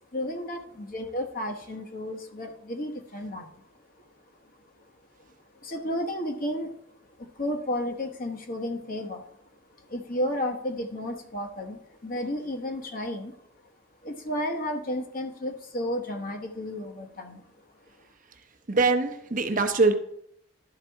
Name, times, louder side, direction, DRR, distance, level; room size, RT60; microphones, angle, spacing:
voice 1, 0.1-3.5 4.0-4.1 4.4-4.8 5.2-5.3 5.6-6.7 7.2-9.2 9.8-13.4 14.0-17.4, left 1 dB, 45° left, 4 dB, 1.0 m, -32 dB
voice 2, 18.7-19.9, right 3 dB, 40° right, 7 dB, 0.7 m, -23 dB
11.5 x 4.1 x 4.6 m, 0.73 s
head